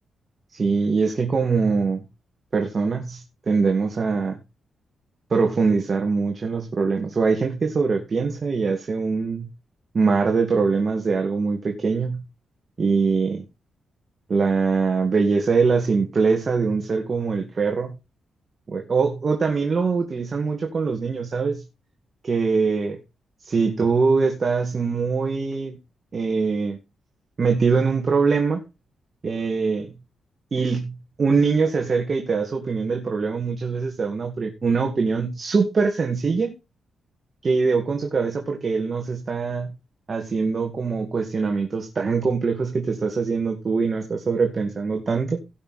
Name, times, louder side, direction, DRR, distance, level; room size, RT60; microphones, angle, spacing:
voice 1, 0.5-2.0 2.5-4.4 5.3-9.5 9.9-12.2 12.8-13.4 14.3-17.9 18.7-21.6 22.2-23.0 23.4-25.8 26.1-26.8 27.4-28.6 29.2-29.9 30.5-36.5 37.4-39.7 40.1-45.4, right 4 dB, 40° right, 3 dB, 2.0 m, -23 dB
17.5 x 5.9 x 4.2 m, 0.27 s
cardioid pair, 120°, 0 cm